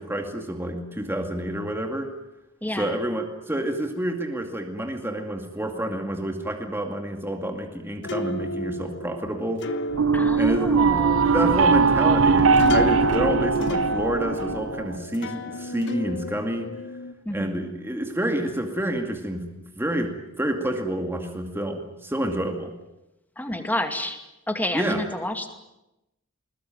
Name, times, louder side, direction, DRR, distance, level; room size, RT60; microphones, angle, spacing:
voice 1, 0.0-2.1 2.8-9.7 10.3-16.7 17.3-22.7 24.7-25.0, right 1 dB, 10° right, 4 dB, 2.3 m, -28 dB
voice 2, 2.6-3.0 10.1-11.3 17.3-17.6 23.4-24.2 24.5-25.5, left 1 dB, 10° left, 6 dB, 2.3 m, -29 dB
sound 1, 8.0-17.1, left 1 dB, 60° left, 1.3 m, -32 dB
sound 2, 9.9-15.0, right 4 dB, 80° right, 0.9 m, -20 dB
21.0 x 20.5 x 9.1 m, 0.91 s
head